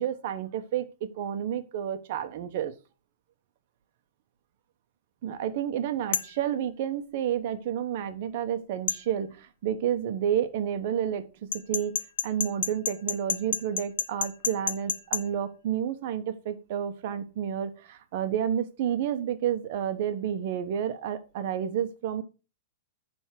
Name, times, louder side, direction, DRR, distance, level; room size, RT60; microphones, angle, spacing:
voice 1, 0.0-2.7 5.2-11.2 11.7-11.9 12.2-22.2, right 9 dB, 50° right, 9 dB, 1.0 m, -30 dB
sound 1, 6.1-6.4 8.9-9.0 11.5-15.2, left 8 dB, 80° left, 0.7 m, -29 dB
9.5 x 3.6 x 5.8 m, 0.33 s
supercardioid pair, 160°, 0 cm